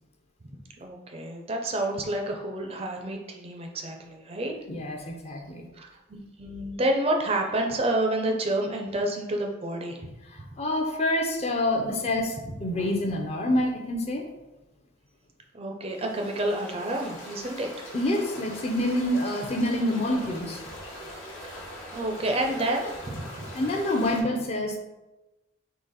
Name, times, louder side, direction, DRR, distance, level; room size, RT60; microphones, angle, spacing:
voice 1, 0.8-4.5 5.7-10.0 12.4-12.5 15.5-17.7 21.4-21.5 21.9-23.4, right 1 dB, 30° right, 2 dB, 0.4 m, -29 dB
voice 2, 4.7-5.4 10.6-14.2 17.9-20.6 23.5-24.8, left 1 dB, 30° left, 2 dB, 0.5 m, -27 dB
sound 1, 15.9-24.2, equal, 75° left, 1.1 m, -41 dB
3.8 x 2.9 x 4.0 m, 1.1 s
head